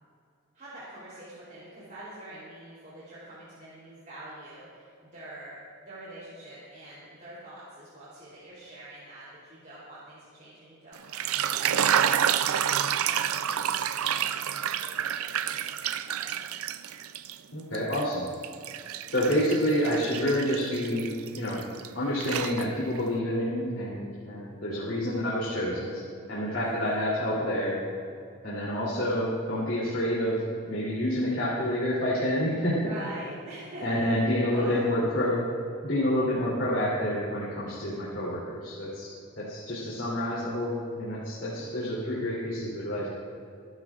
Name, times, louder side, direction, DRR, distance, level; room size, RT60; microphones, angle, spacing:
voice 1, 0.5-16.4 26.4-26.6 28.6-29.0 32.8-34.8 36.1-36.2, right 1 dB, 40° right, -9 dB, 3.3 m, -45 dB
sound 1, 11.0-17.4 17.7-21.9 22.2-23.0, right 9 dB, 85° right, 0.5 m, -29 dB
voice 2, 17.5-18.2 19.1-21.6 21.9-25.9 26.3-27.7 28.4-30.4 30.6-32.8 33.8-35.4 35.8-43.1, equal, 60° left, -7 dB, 3.1 m, -28 dB
25.5 x 12.0 x 2.5 m, 2.5 s
head